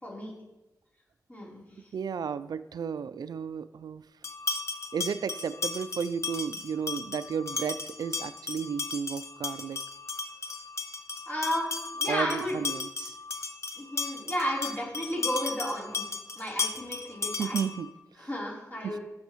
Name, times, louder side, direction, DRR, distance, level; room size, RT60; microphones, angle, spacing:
voice 1, 1.3-1.6 11.3-12.6 13.8-16.0 16.3-17.6 18.2-19.0, equal, 25° left, -5 dB, 3.7 m, -33 dB
voice 2, 1.9-4.0 4.9-9.8 12.1-13.2 17.3-17.9 18.2-18.3 18.8-19.0, right 6 dB, 80° right, 14 dB, 0.4 m, -33 dB
sound 1, 4.2-17.9, left 4 dB, 45° left, 0.7 m, -35 dB
18.0 x 6.9 x 3.1 m, 0.98 s
wide cardioid pair, 140°, 7 cm